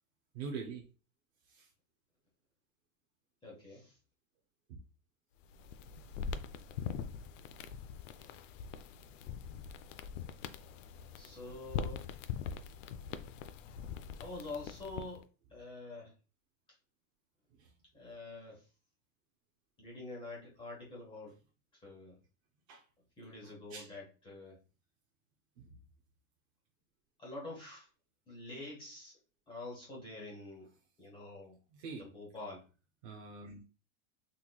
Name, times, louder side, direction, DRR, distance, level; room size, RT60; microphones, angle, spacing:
voice 1, 0.3-0.8 1.5-1.7 4.7-4.8 17.6-17.7 22.7-22.8 23.7-23.9 25.6-25.7 31.7-32.0 33.0-33.6, right 5 dB, 30° right, 0 dB, 0.4 m, -44 dB
voice 2, 3.4-4.0 11.2-12.0 14.2-15.2 15.5-16.1 17.9-18.6 19.8-21.3 21.8-22.2 23.2-24.6 27.2-27.9 28.3-29.2 29.5-30.7 31.0-31.6 32.0-32.6, left 2 dB, 10° left, -4 dB, 1.0 m, -46 dB
sound 1, 5.4-15.2, left 7 dB, 65° left, 0.5 m, -43 dB
3.8 x 3.0 x 2.3 m, 0.34 s
supercardioid pair, 165°, 41 cm